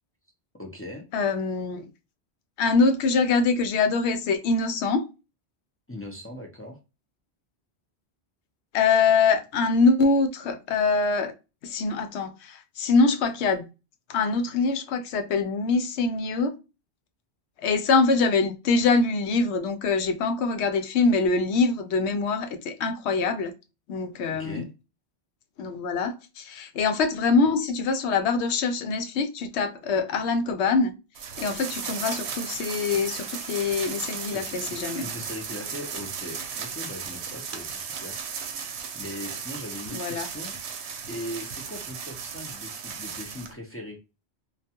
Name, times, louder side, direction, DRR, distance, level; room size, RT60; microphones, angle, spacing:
voice 1, 0.6-1.1 5.9-6.8 24.3-24.7 26.5-26.7 34.0-38.4 38.9-40.6 41.1-44.0, left 1 dB, 20° left, 0.4 m, -40 dB
voice 2, 1.1-1.9 2.6-5.0 8.7-11.3 11.6-13.7 14.1-16.5 17.6-23.5 23.9-24.7 25.6-30.9 31.4-35.1 39.9-40.3, left 4 dB, 90° left, 0.9 m, -24 dB
sound 1, 31.2-43.5, right 6 dB, 80° right, 0.9 m, -35 dB
2.3 x 2.3 x 2.7 m
omnidirectional pair, 1.1 m